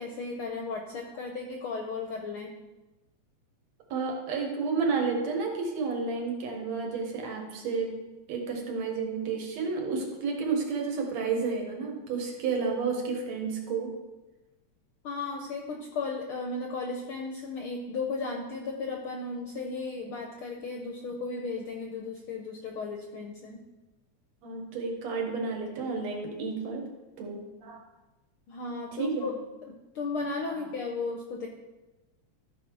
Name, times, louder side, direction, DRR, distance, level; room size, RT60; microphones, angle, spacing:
voice 1, 0.0-2.5 15.0-23.6 28.5-29.3 29.7-31.5, left 3 dB, 70° left, 2 dB, 1.3 m, -35 dB
voice 2, 3.9-8.0 8.3-14.0 24.4-26.8 27.2-27.8 29.0-29.3, right 4 dB, 65° right, 1 dB, 2.6 m, -31 dB
13.5 x 5.5 x 4.7 m, 1.1 s
omnidirectional pair, 3.4 m